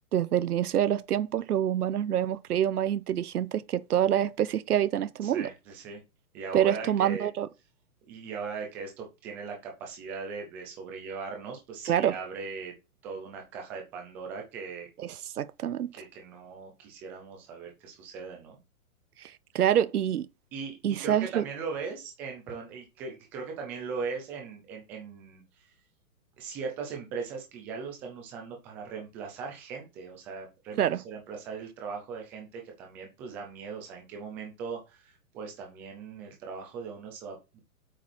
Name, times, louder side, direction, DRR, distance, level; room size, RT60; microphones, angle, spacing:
voice 1, 0.1-5.5 6.5-7.5 11.9-12.2 15.0-15.9 19.2-20.3 20.8-21.4 30.8-31.0, right 10 dB, 85° right, 1.0 m, -26 dB
voice 2, 5.2-6.0 6.3-7.3 8.1-12.7 13.0-14.9 15.9-18.6 20.5-25.4 26.4-30.8 31.0-37.6, right 5 dB, 5° right, 0.5 m, -39 dB
8.4 x 6.3 x 6.2 m
hypercardioid pair, 165°, 44 cm